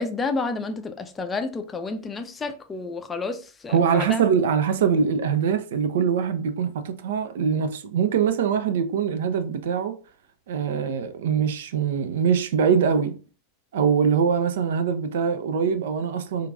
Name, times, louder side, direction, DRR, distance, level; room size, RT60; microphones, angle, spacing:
voice 1, 0.0-4.2, left 3 dB, 15° left, 0.4 m, -30 dB
voice 2, 3.7-10.0 10.5-13.2 13.7-16.5, right 7 dB, 60° right, 0.3 m, -23 dB
4.4 x 2.5 x 2.5 m
figure-of-eight pair, 90°, 0 cm